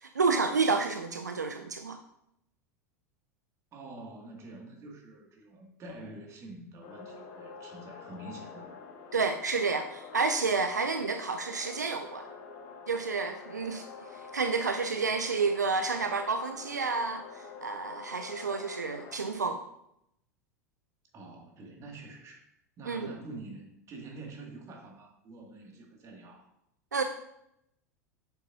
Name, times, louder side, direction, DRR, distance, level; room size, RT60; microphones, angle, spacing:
voice 1, 0.0-2.0 9.1-12.3 12.9-13.8 14.1-19.6 22.9-23.1 26.9-27.0, right 4 dB, 80° right, 8 dB, 0.4 m, -30 dB
voice 2, 3.7-8.8 21.1-22.4 22.8-26.5, right 2 dB, 35° right, 1 dB, 2.1 m, -46 dB
sound 1, 6.8-19.2, left 5 dB, 45° left, 1.3 m, -47 dB
8.9 x 6.8 x 2.7 m, 0.79 s
figure-of-eight pair, 80°, 9 cm